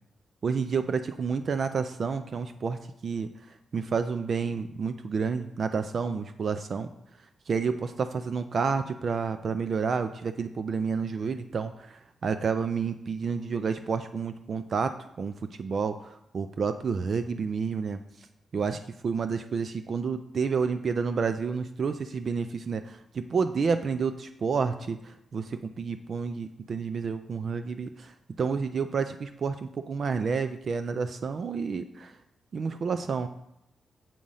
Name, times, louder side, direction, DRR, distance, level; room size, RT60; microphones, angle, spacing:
voice 1, 0.4-3.3 3.7-6.9 7.5-18.3 18.5-32.2 32.5-33.3, right 5 dB, 45° right, 10 dB, 0.3 m, -30 dB
7.6 x 4.9 x 5.5 m, 0.81 s
wide cardioid pair, 170°, 0 cm